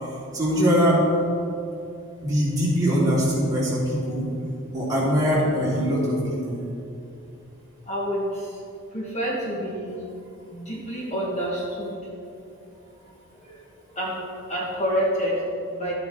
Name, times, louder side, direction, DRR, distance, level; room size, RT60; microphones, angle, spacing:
voice 1, 0.3-1.0 2.2-4.3 4.7-6.6, equal, 15° right, -7 dB, 2.5 m, -22 dB
voice 2, 7.9-8.6 8.9-10.0 10.5-12.0 13.3-13.6 13.9-14.2 14.5-15.9, equal, 30° left, -4 dB, 1.5 m, -28 dB
12.0 x 9.0 x 3.7 m, 2.6 s
head